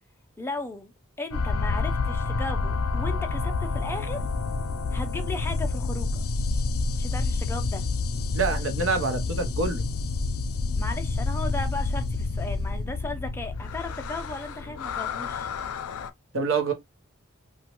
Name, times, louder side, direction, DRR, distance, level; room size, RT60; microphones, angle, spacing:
voice 1, 0.4-0.9 1.2-4.2 4.9-6.2 7.0-7.8 10.7-15.5, left 2 dB, 10° left, 0.5 m, -36 dB
sound 1, 1.3-16.1, left 3 dB, 90° left, 0.4 m, -28 dB
voice 2, 8.3-9.8 16.3-16.7, right 4 dB, 65° right, 0.8 m, -26 dB
3.0 x 2.2 x 2.9 m
head